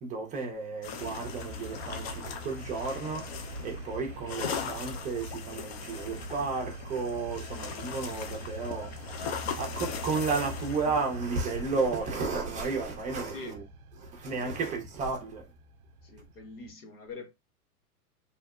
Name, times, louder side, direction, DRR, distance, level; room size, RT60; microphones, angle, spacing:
voice 1, 0.0-3.3 3.6-9.2 9.6-13.6 14.0-15.5, right 4 dB, 15° right, 0.5 m, -33 dB
sound 1, 0.8-12.5, left 7 dB, 45° left, 0.5 m, -40 dB
sound 2, 1.0-16.7, right 1 dB, 70° right, 0.5 m, -44 dB
voice 2, 13.2-13.6 14.2-14.6 16.0-17.3, left 3 dB, 75° left, 1.0 m, -44 dB
2.9 x 2.0 x 2.3 m
hypercardioid pair, 120°, 46 cm